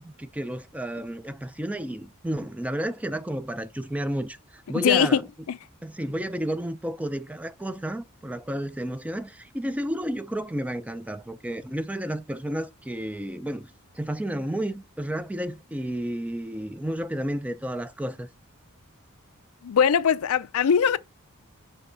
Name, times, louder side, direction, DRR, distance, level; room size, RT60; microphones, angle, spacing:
voice 1, 0.0-5.3 5.8-18.3, right 1 dB, 5° right, 0.4 m, -32 dB
voice 2, 4.7-5.2 5.5-5.6 19.6-21.0, left 7 dB, 70° left, 0.4 m, -21 dB
5.6 x 3.4 x 5.4 m
head